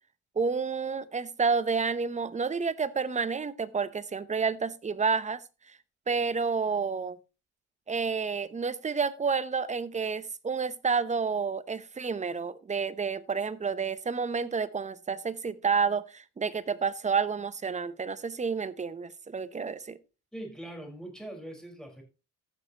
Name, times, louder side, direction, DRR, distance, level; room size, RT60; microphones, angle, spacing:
voice 1, 0.4-5.4 6.1-7.2 7.9-20.0, right 5 dB, 20° right, 16 dB, 0.7 m, -30 dB
voice 2, 20.3-22.0, right 1 dB, ahead, 2 dB, 4.4 m, -42 dB
15.0 x 6.5 x 2.9 m, 0.30 s
supercardioid pair, 85°, 35 cm